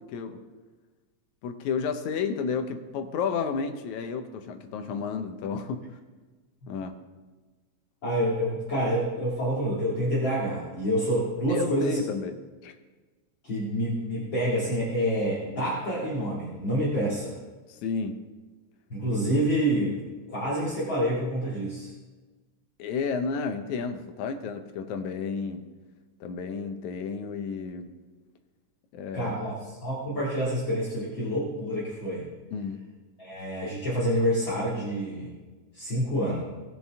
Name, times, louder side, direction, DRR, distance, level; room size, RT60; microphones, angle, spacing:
voice 1, 0.1-0.4 1.4-5.8 6.7-7.0 11.5-12.4 12.6-12.8 17.7-18.2 22.8-25.7 26.2-27.9 28.9-29.4 32.5-32.8, left 5 dB, 80° left, 7 dB, 2.2 m, -31 dB
voice 2, 8.0-12.0 13.4-17.4 18.9-21.9 29.1-32.3 33.2-35.3 35.7-36.4, equal, 40° left, -7 dB, 2.7 m, -27 dB
18.5 x 6.8 x 3.5 m, 1.3 s
omnidirectional pair, 3.4 m